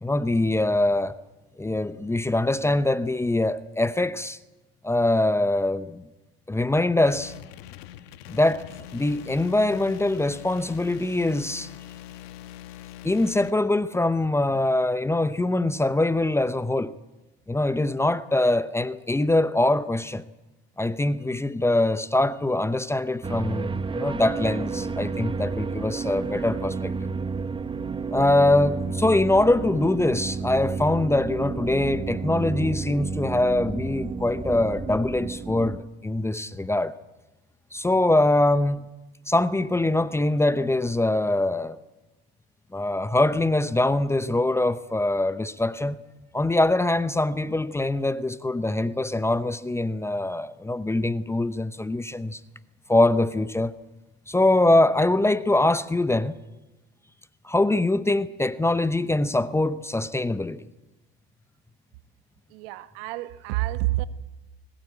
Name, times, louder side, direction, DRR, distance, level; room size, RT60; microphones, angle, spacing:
voice 1, 0.0-1.1 1.6-4.4 4.8-6.0 6.5-7.3 8.3-8.7 8.9-11.7 13.0-17.0 17.5-20.2 20.8-27.1 28.1-36.9 37.7-38.9 39.3-41.8 42.7-46.0 46.3-52.4 52.9-53.7 54.3-56.4 57.4-60.7, left 2 dB, 10° left, 0.8 m, -23 dB
sound 1, 7.1-13.5, left 12 dB, 70° left, 1.5 m, -43 dB
sound 2, 23.2-35.8, right 4 dB, 15° right, 1.1 m, -31 dB
voice 2, 62.5-64.0, right 18 dB, 65° right, 1.4 m, -28 dB
21.0 x 19.5 x 8.2 m
hypercardioid pair, 95°, 31 cm